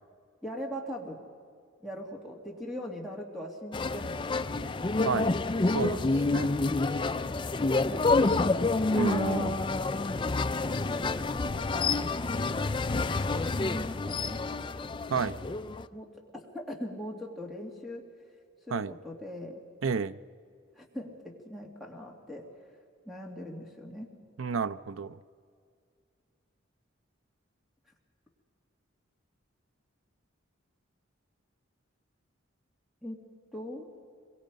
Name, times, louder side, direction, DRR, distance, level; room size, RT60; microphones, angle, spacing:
voice 1, 0.4-1.2 1.8-4.6 7.8-8.2 8.9-9.6 10.6-12.2 13.3-14.4 15.9-16.1 16.3-18.0 18.7-19.6 20.8-22.5 23.1-24.1 33.0-33.2 33.5-33.9, equal, ahead, 0 dB, 2.3 m, -40 dB
sound 1, 3.7-15.9, left 3 dB, 25° left, 0.4 m, -28 dB
voice 2, 5.7-6.5 9.0-9.5 15.1-15.4 18.7-18.9 19.8-20.2 24.4-25.2, right 5 dB, 80° right, 14 dB, 0.6 m, -31 dB
25.5 x 22.5 x 5.2 m, 2.2 s
head